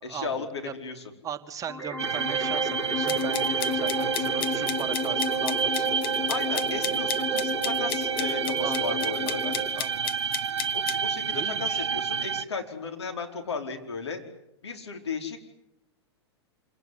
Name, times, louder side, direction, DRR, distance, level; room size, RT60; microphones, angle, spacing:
voice 1, 0.0-1.1 6.3-9.5 10.7-14.2 14.6-15.4, left 4 dB, 80° left, 3 dB, 4.9 m, -35 dB
voice 2, 1.2-6.3 8.6-9.0 9.3-9.4 9.7-10.1 11.3-11.9, right 8 dB, 25° right, 8 dB, 1.8 m, -38 dB
sound 1, 1.7-9.7, equal, 20° left, 6.7 m, -31 dB
sound 2, 2.0-12.4, right 7 dB, 80° right, 0.9 m, -29 dB
sound 3, 3.1-11.0, left 12 dB, 55° left, 1.4 m, -35 dB
27.0 x 19.0 x 9.8 m, 0.85 s
hypercardioid pair, 105°, 14 cm